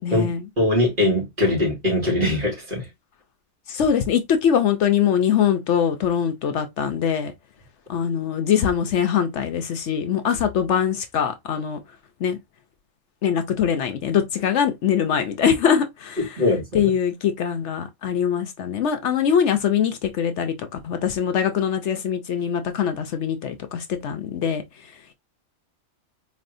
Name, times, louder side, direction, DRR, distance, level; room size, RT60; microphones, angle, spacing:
voice 1, 0.0-0.5 3.7-7.3 7.9-11.8 12.2-12.4 13.2-16.4 16.7-24.6, left 8 dB, 70° left, 0.9 m, -22 dB
voice 2, 0.6-2.9 16.4-16.9, left 1 dB, 40° right, 2.4 m, -21 dB
4.2 x 3.2 x 2.5 m
omnidirectional pair, 1.3 m